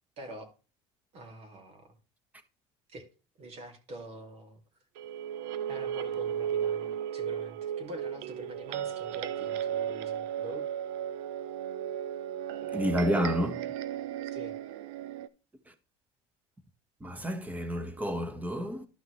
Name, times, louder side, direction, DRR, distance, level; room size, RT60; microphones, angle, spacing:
voice 1, 0.2-0.5 1.1-1.9 2.9-3.0 3.4-4.6 5.7-10.6 14.3-14.5, right 1 dB, 50° right, 2.9 m, -45 dB
sound 1, 5.0-15.3, right 9 dB, 85° right, 0.7 m, -35 dB
voice 2, 12.7-13.6 17.0-18.9, equal, 10° right, 1.5 m, -30 dB
12.0 x 5.9 x 3.2 m
cardioid pair, 125°, 14 cm